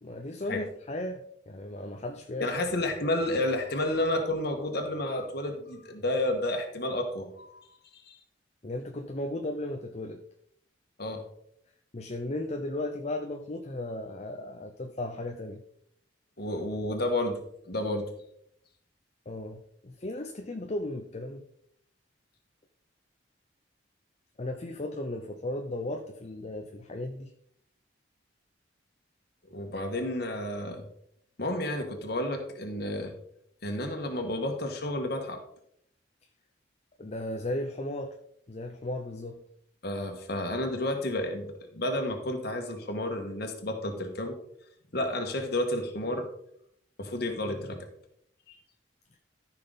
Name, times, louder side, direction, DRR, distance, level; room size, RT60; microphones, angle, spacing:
voice 1, 0.0-2.5 8.6-10.2 11.9-15.6 19.3-21.4 24.4-27.3 37.0-38.2 38.5-39.4, left 1 dB, 35° left, 5 dB, 0.6 m, -35 dB
voice 2, 2.4-7.7 7.9-8.2 11.0-11.2 16.4-18.1 29.5-30.8 31.4-33.1 33.6-35.4 39.8-44.3 44.9-46.3 47.0-47.8 48.5-48.6, left 1 dB, 55° left, 3 dB, 1.6 m, -31 dB
14.0 x 5.9 x 4.0 m, 0.70 s
head